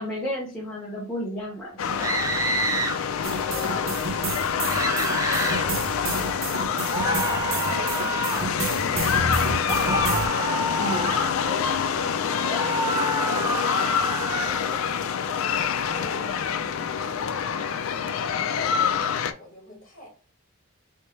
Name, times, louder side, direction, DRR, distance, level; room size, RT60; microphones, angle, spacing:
voice 1, 0.0-2.1 10.8-11.1, equal, 5° left, 1.0 m, -32 dB
sound 1, 1.8-19.3, left 7 dB, 90° left, 0.4 m, -26 dB
sound 2, 2.0-3.0 4.6-5.6 6.9-8.5 9.7-11.4 12.5-14.6, right 2 dB, 15° right, 0.4 m, -28 dB
sound 3, 3.2-10.3, right 3 dB, 75° right, 0.8 m, -30 dB
voice 2, 11.4-20.1, equal, 40° left, 1.7 m, -44 dB
3.2 x 3.2 x 3.1 m
head